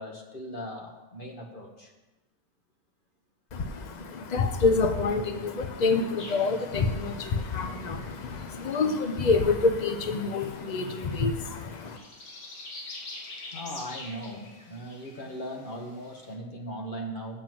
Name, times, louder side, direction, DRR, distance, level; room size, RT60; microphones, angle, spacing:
voice 1, 0.0-1.9 13.5-17.4, equal, 30° left, 2 dB, 1.4 m, -39 dB
voice 2, 3.5-12.0, left 4 dB, 90° left, 7 dB, 0.3 m, -27 dB
sound 1, 6.2-16.3, left 2 dB, 75° left, 2.3 m, -47 dB
7.9 x 7.3 x 7.7 m, 1.1 s
omnidirectional pair, 1.9 m